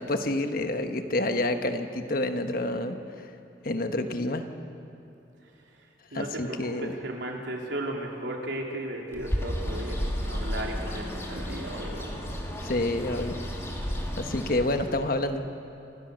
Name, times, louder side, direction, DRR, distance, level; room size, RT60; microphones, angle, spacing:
voice 1, 0.0-3.0 3.6-4.4 6.1-6.9 12.6-13.4 14.2-15.4, left 1 dB, 55° left, 7 dB, 1.3 m, -28 dB
voice 2, 6.1-12.1, right 1 dB, 90° right, 0 dB, 3.4 m, -35 dB
Bird, 9.1-15.0, equal, 15° left, 2.6 m, -33 dB
27.0 x 17.5 x 6.5 m, 2.7 s
head